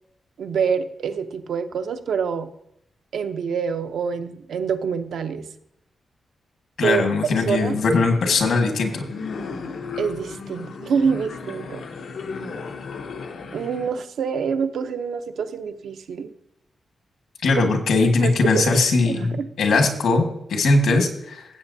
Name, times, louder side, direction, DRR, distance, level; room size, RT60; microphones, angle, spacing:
voice 1, 0.4-2.5 3.1-5.5 6.8-7.0 7.5-7.8 10.0-11.8 13.5-16.3 17.6-17.7 18.2-18.8 19.0-19.3, right 6 dB, 90° right, 8 dB, 0.7 m, -26 dB
voice 2, 6.8-9.1 17.4-21.4, left 3 dB, 85° left, 4 dB, 1.7 m, -20 dB
sound 1, 7.3-13.9, left 4 dB, 65° left, 0.9 m, -35 dB
16.0 x 8.1 x 2.7 m, 0.79 s
wide cardioid pair, 165°, 0 cm